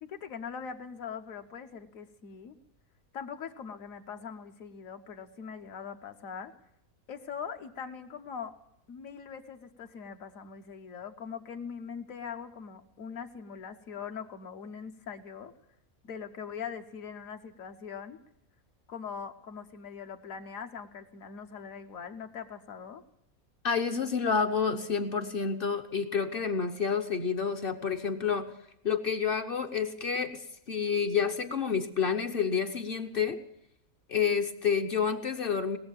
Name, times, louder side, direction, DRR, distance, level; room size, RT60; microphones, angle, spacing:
voice 1, 0.0-2.6 3.1-6.5 7.1-8.5 8.9-15.5 16.0-18.2 18.9-23.0, left 6 dB, 70° left, 6 dB, 1.4 m, -42 dB
voice 2, 23.6-28.5 28.8-33.4 34.1-35.8, left 6 dB, 50° left, 7 dB, 0.8 m, -29 dB
19.5 x 7.4 x 8.8 m, 0.77 s
omnidirectional pair, 1.5 m